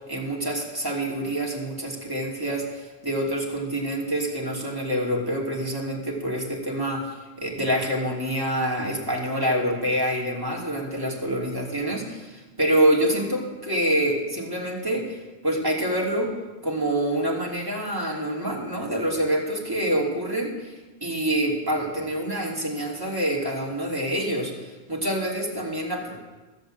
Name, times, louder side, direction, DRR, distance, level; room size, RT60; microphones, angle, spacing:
voice 1, 0.1-15.2 15.4-16.3 16.6-20.7 21.0-26.2, right 1 dB, 20° right, -3 dB, 2.8 m, -26 dB
14.5 x 7.8 x 7.6 m, 1.2 s
omnidirectional pair, 1.1 m